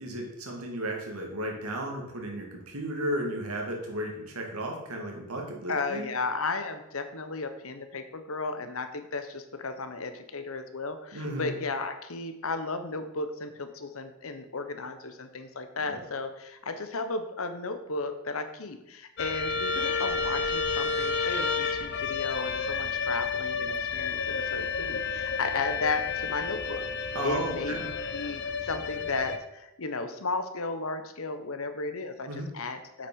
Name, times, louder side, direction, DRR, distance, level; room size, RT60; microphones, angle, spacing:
voice 1, 0.0-6.1 11.1-11.5 15.9-16.0 27.1-27.8 32.3-32.5, right 1 dB, 85° right, 1 dB, 2.5 m, -34 dB
voice 2, 5.7-33.1, left 3 dB, 75° left, 9 dB, 1.1 m, -34 dB
sound 1, 19.2-29.4, left 5 dB, 50° left, 0.7 m, -31 dB
8.3 x 6.1 x 6.3 m, 0.88 s
head